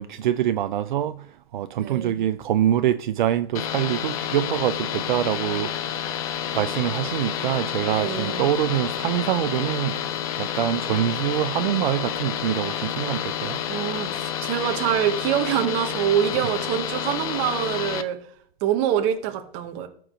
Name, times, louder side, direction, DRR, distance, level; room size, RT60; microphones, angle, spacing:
voice 1, 0.0-6.2 6.5-13.6 16.3-16.5, right 11 dB, 55° right, 0.5 m, -25 dB
voice 2, 1.8-2.2 7.9-8.4 13.7-18.2 18.6-19.9, right 10 dB, 25° right, 0.9 m, -25 dB
sound 1, 3.5-18.0, left 9 dB, 35° left, 0.7 m, -29 dB
12.5 x 4.6 x 5.1 m
hypercardioid pair, 160°, 30 cm